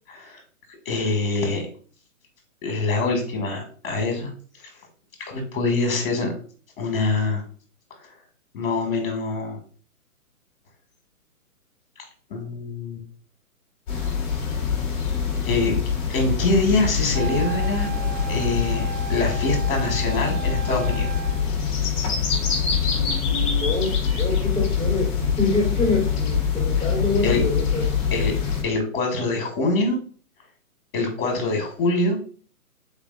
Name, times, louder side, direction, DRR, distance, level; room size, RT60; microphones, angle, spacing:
voice 1, 0.9-1.7 2.6-4.3 5.3-6.3 6.8-7.4 8.5-9.6 12.3-13.0 15.4-15.7 16.1-17.9 18.3-21.1 27.2-27.4 28.1-28.3 28.6-30.0 30.9-32.2, left 2 dB, 40° left, 3 dB, 1.7 m, -24 dB
sound 1, 13.9-28.6, left 6 dB, 20° left, 1.3 m, -24 dB
Wind instrument woodwind instrument, 17.1-21.6, right 7 dB, 45° right, 0.8 m, -35 dB
voice 2, 22.9-27.9, left 3 dB, 5° right, -13 dB, 1.8 m, -26 dB
4.0 x 3.4 x 3.8 m, 0.43 s
hypercardioid pair, 165°, 44 cm